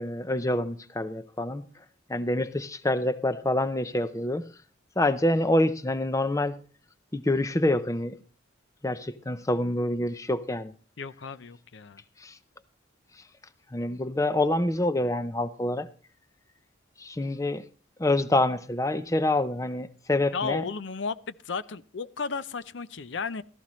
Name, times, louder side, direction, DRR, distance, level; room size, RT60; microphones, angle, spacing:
voice 1, 0.0-1.7 2.1-4.5 5.0-6.6 7.1-8.2 8.8-10.7 12.2-12.4 13.7-15.9 17.0-17.7 18.0-20.6, left 1 dB, 15° left, 0.5 m, -26 dB
voice 2, 11.0-12.0 20.3-23.4, left 5 dB, 75° left, 0.6 m, -34 dB
16.0 x 14.5 x 3.1 m
head